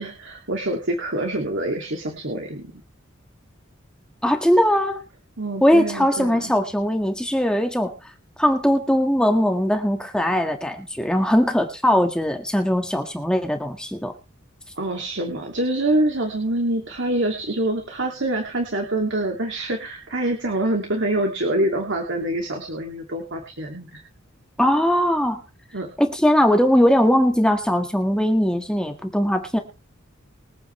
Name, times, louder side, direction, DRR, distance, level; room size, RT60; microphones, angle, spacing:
voice 1, 0.0-2.7 5.4-6.5 14.8-24.0 25.7-25.9, right 1 dB, 65° right, 1 dB, 2.6 m, -25 dB
voice 2, 4.2-5.0 5.6-7.9 8.4-14.1 24.6-25.4 26.0-29.6, equal, 5° left, 4 dB, 1.8 m, -20 dB
24.5 x 9.2 x 3.3 m, 0.30 s
head